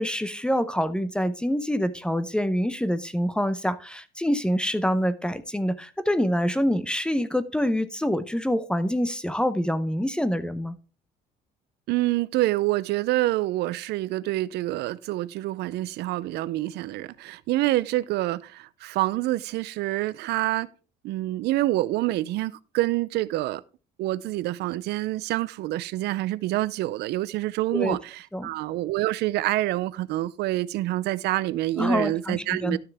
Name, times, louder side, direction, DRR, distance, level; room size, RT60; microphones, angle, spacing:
voice 1, 0.0-10.7 27.7-28.0 28.3-28.5 31.8-32.8, equal, 5° left, 0.7 m, -26 dB
voice 2, 11.9-20.7 21.0-23.6 24.0-32.8, right 16 dB, 80° right, 0.5 m, -27 dB
12.0 x 6.5 x 3.4 m
cardioid pair, 110°, 17 cm